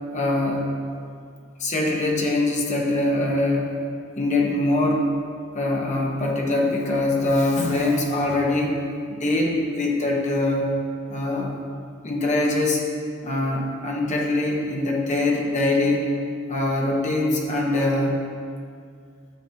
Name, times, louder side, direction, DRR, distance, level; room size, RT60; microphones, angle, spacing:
voice 1, 0.1-0.7 1.6-3.8 4.2-5.1 5.5-8.8 9.1-10.7 11.1-11.6 12.0-12.8 13.2-16.1 16.5-18.2, left 2 dB, 35° left, -1 dB, 1.2 m, -23 dB
12.0 x 8.1 x 2.9 m, 2.2 s
head